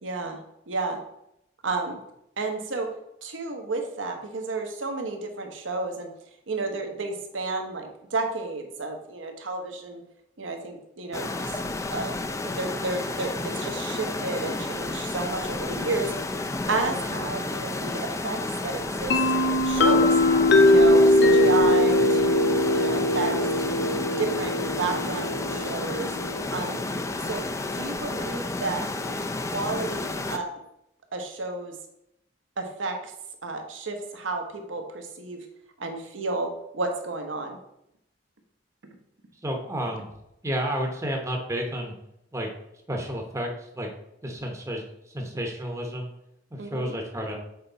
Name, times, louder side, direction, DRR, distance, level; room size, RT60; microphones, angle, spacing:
voice 1, 0.0-0.4 0.7-1.0 1.6-2.0 2.4-2.9 3.2-6.1 6.5-10.0 10.4-11.5 11.9-12.1 12.4-20.1 20.6-23.8 24.2-26.1 26.5-26.8 27.3-27.4 27.7-30.5 31.1-31.7 32.6-33.1 33.4-35.4 35.8-36.5 36.7-37.6 46.6-46.9, right 3 dB, 90° right, 4 dB, 1.1 m, -31 dB
sound 1, 11.1-30.4, left 2 dB, 15° left, 0.4 m, -31 dB
sound 2, 19.1-26.7, left 1 dB, 65° left, 0.6 m, -21 dB
voice 2, 39.4-40.1 40.4-41.9 42.3-42.5 42.9-43.9 44.2-46.1 46.5-47.4, equal, 15° right, 2 dB, 0.8 m, -31 dB
6.7 x 4.4 x 3.9 m, 0.80 s
head